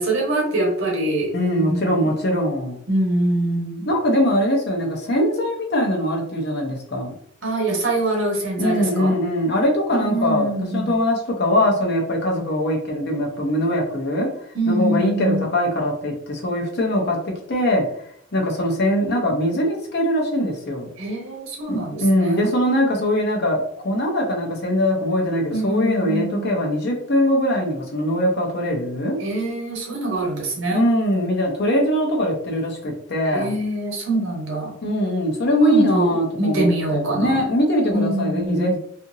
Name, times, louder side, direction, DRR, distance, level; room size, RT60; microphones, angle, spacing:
voice 1, 0.0-1.3 1.6-2.1 2.9-3.9 7.4-9.1 9.9-10.9 14.5-15.5 21.0-22.5 25.5-26.5 29.2-30.8 33.3-34.7 35.6-36.1 36.4-37.4 37.9-38.7, right 1 dB, 60° right, -1 dB, 1.0 m, -24 dB
voice 2, 1.3-2.8 3.8-7.1 8.6-10.5 10.7-14.3 14.7-17.9 18.3-20.9 21.7-29.2 30.7-33.5 34.8-38.8, equal, 50° left, 0 dB, 0.7 m, -21 dB
2.8 x 2.6 x 2.6 m, 0.66 s
head